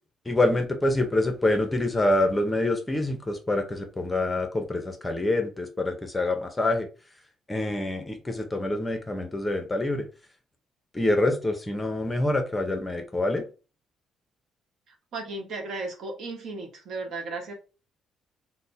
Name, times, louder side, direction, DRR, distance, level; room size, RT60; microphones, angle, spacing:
voice 1, 0.3-6.9 7.5-10.1 10.9-13.4, left 2 dB, 15° left, 5 dB, 0.6 m, -26 dB
voice 2, 15.1-17.5, right 3 dB, 65° right, 3 dB, 1.0 m, -35 dB
3.3 x 2.1 x 4.0 m, 0.34 s
cardioid pair, 130°, 0 cm